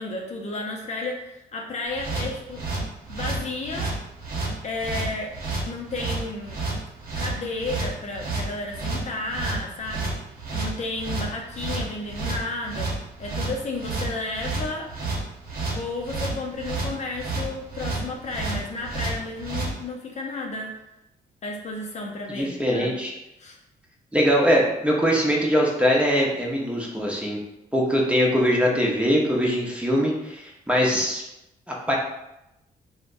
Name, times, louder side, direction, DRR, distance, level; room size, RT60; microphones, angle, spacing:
voice 1, 0.0-2.6 3.1-3.9 4.6-5.4 5.6-6.6 7.2-10.1 10.5-14.9 15.7-20.8 21.4-23.0 23.4-23.6, left 2 dB, 45° left, 0 dB, 0.5 m, -32 dB
sound 1, 1.9-19.7, right 3 dB, 65° right, 0.7 m, -30 dB
voice 2, 22.3-23.1 24.1-27.4 27.7-31.2 31.7-32.0, equal, 5° right, -2 dB, 0.7 m, -22 dB
3.3 x 2.1 x 2.5 m, 0.89 s
cardioid pair, 70°, 16 cm